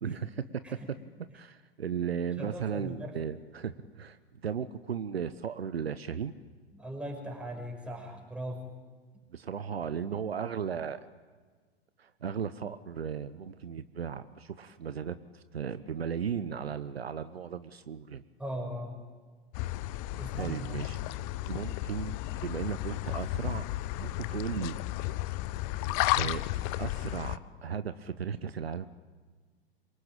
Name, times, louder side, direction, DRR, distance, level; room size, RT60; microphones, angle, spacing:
voice 1, 0.0-1.0 1.3-4.2 4.4-6.3 9.3-11.0 12.0-18.2 20.4-21.0 21.5-23.6 24.0-24.8 26.1-26.4 26.8-28.9, right 7 dB, 70° right, 13 dB, 1.1 m, -36 dB
voice 2, 2.4-3.2 6.7-8.7 18.4-19.0 20.2-20.8, equal, 5° right, 2 dB, 5.7 m, -39 dB
sound 1, 19.5-27.4, left 16 dB, 35° left, 0.8 m, -33 dB
26.5 x 23.5 x 8.9 m, 1.5 s
figure-of-eight pair, 100°, 32 cm